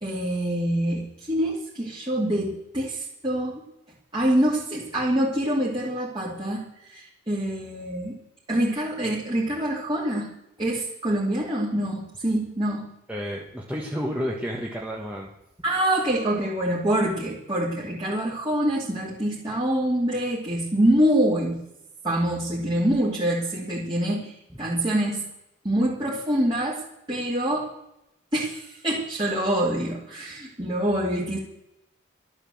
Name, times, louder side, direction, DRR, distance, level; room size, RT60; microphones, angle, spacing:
voice 1, 0.0-3.6 4.1-8.2 8.5-10.3 10.6-12.9 15.6-21.6 22.0-24.3 24.6-25.3 25.6-26.8 27.1-27.7 28.3-31.4, right 1 dB, 25° right, -6 dB, 2.7 m, -25 dB
voice 2, 13.1-15.3, equal, 5° right, -2 dB, 1.4 m, -31 dB
12.5 x 11.0 x 7.7 m, 0.85 s
head